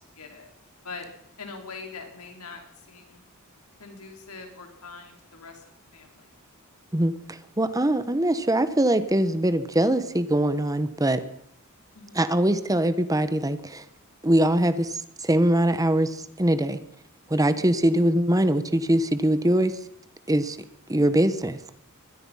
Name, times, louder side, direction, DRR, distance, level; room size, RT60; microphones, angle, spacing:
voice 1, 0.2-0.5 0.8-1.1 1.4-3.2 3.8-5.6 5.9-6.3 11.9-12.3 17.5-17.8, left 4 dB, 90° left, 3 dB, 5.2 m, -43 dB
voice 2, 6.9-11.2 12.1-13.8 14.2-16.8 17.3-19.8 20.3-20.6 20.9-21.6, right 1 dB, 15° right, 12 dB, 1.2 m, -22 dB
23.0 x 20.5 x 5.7 m, 0.73 s
head